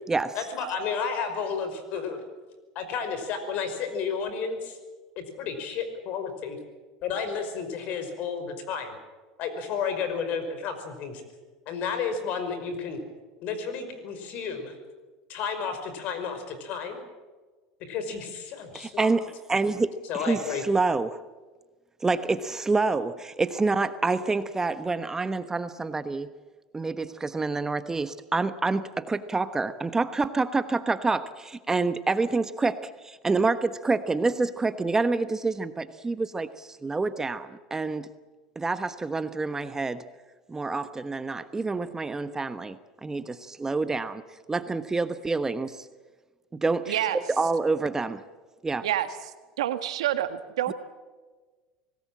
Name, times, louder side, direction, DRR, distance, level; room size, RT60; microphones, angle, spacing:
voice 1, 0.4-2.2 2.8-4.8 5.2-6.6 7.0-9.0 9.4-11.2 11.7-13.0 13.4-14.7 15.3-17.0 17.8-19.1 20.1-20.6, left 6 dB, 60° left, 8 dB, 5.4 m, -32 dB
voice 2, 18.7-21.2 22.0-26.3 26.7-38.1 38.5-40.0 40.5-44.2 44.5-45.9 46.5-48.2 48.6-48.9 50.7-50.8, right 3 dB, 15° right, 12 dB, 1.1 m, -27 dB
voice 3, 46.9-47.2 48.8-49.1 49.6-50.7, right 12 dB, 85° right, 10 dB, 1.7 m, -27 dB
26.0 x 18.5 x 7.6 m, 1.3 s
hypercardioid pair, 90°, 3 cm